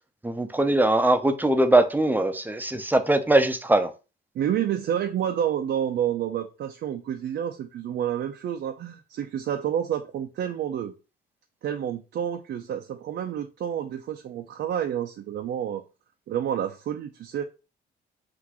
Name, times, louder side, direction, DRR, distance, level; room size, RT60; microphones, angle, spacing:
voice 1, 0.2-3.9, right 1 dB, 10° right, 0.6 m, -21 dB
voice 2, 4.3-10.9 11.6-15.8 16.3-17.5, right 9 dB, 60° right, 0.5 m, -29 dB
6.0 x 2.6 x 2.9 m
cardioid pair, 90°, 20 cm